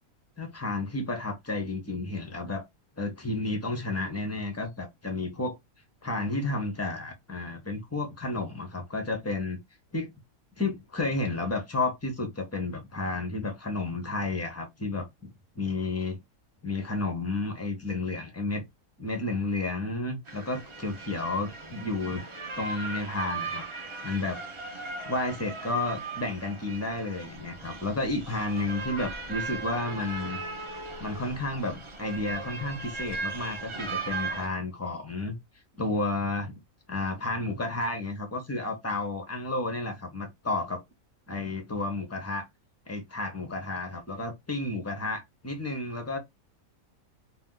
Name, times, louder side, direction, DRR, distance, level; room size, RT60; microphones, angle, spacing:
voice 1, 0.4-2.6 3.0-5.6 6.0-9.6 9.9-10.1 10.6-16.2 16.6-18.6 19.0-22.2 22.6-24.4 24.7-30.4 31.0-35.4 35.8-36.6 36.9-40.8 41.3-42.5 42.9-46.2, left 2 dB, 20° left, 0.5 m, -32 dB
sound 1, 20.3-34.5, right 3 dB, 40° right, 0.4 m, -38 dB
2.6 x 2.3 x 3.7 m
omnidirectional pair, 1.5 m